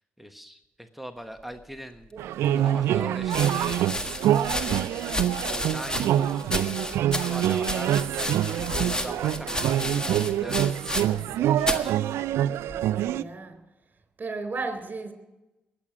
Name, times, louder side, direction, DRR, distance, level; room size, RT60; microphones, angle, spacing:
voice 1, 0.0-2.1 2.6-3.8 5.5-10.6 11.4-12.0, equal, 5° right, 1.2 m, -41 dB
sound 1, 2.2-2.3 3.2-11.3 11.6-11.9 12.7-13.1, left 1 dB, 15° left, 1.5 m, -32 dB
sound 2, 2.2-13.2, right 11 dB, 85° right, 0.4 m, -25 dB
voice 2, 13.0-13.6 14.2-15.1, right 3 dB, 40° right, 3.8 m, -34 dB
21.0 x 8.7 x 6.1 m
supercardioid pair, 55°, 4 cm